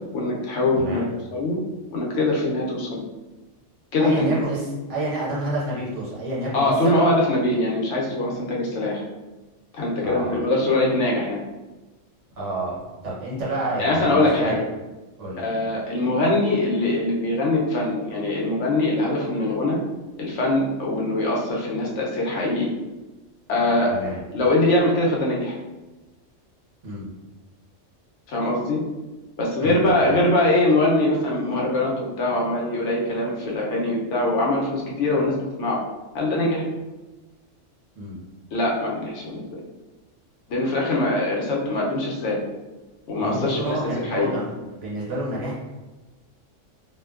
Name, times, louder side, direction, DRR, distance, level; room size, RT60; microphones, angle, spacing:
voice 1, 0.1-1.0 1.3-1.6 1.9-3.0 3.9-4.3 6.5-9.0 9.7-11.4 13.8-14.6 15.4-19.8 20.2-22.7 23.5-25.6 28.3-28.8 29.4-35.8 36.1-36.6 38.5-39.6 40.5-42.4 43.1-43.8 44.1-44.3, left 2 dB, 75° left, -2 dB, 0.9 m, -22 dB
voice 2, 0.8-1.1 4.0-7.0 10.0-10.4 12.4-14.5 15.2-15.4 23.9-24.2 26.8-27.1 29.6-30.2 37.9-38.2 43.2-45.6, right 1 dB, 70° right, -7 dB, 1.2 m, -29 dB
2.5 x 2.1 x 2.3 m, 1.1 s
omnidirectional pair, 1.3 m